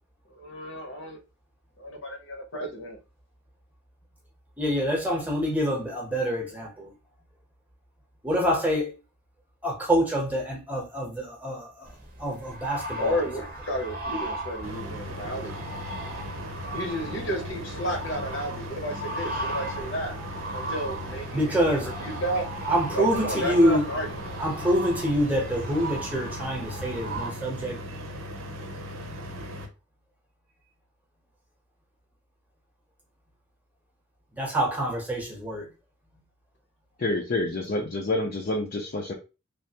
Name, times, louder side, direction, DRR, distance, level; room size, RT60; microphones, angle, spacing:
voice 1, 0.3-1.2 1.8-3.0 13.0-15.7 16.7-20.1 20.5-22.4 22.9-24.4, equal, 65° left, 0.9 m, -32 dB
voice 2, 4.6-6.9 8.2-8.9 9.6-11.9 12.2-13.2 21.3-21.9 22.7-23.9 24.4-27.8 34.4-35.7, equal, 5° right, 0.8 m, -26 dB
sound 1, 11.9-27.3, right 1 dB, 40° right, 0.7 m, -37 dB
sound 2, 14.6-29.7, equal, 80° right, 0.7 m, -38 dB
voice 3, 37.0-39.1, left 2 dB, 45° left, 0.4 m, -28 dB
3.2 x 2.5 x 2.8 m
head